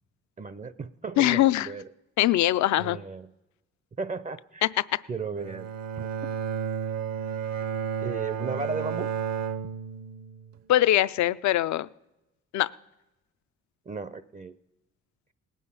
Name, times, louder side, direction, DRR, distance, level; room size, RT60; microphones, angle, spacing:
voice 1, 0.4-1.8 2.8-3.3 4.0-4.7 5.1-5.7 6.0-6.3 8.0-9.1 13.9-14.5, right 4 dB, 25° right, 15 dB, 0.5 m, -35 dB
voice 2, 1.2-1.7 2.2-3.0 4.6-5.0 10.7-11.9 12.5-12.7, left 14 dB, 70° left, 16 dB, 0.5 m, -22 dB
Bowed string instrument, 5.4-10.6, right 8 dB, 65° right, 0.7 m, -32 dB
19.0 x 8.6 x 5.5 m, 0.96 s
cardioid pair, 90°, 30 cm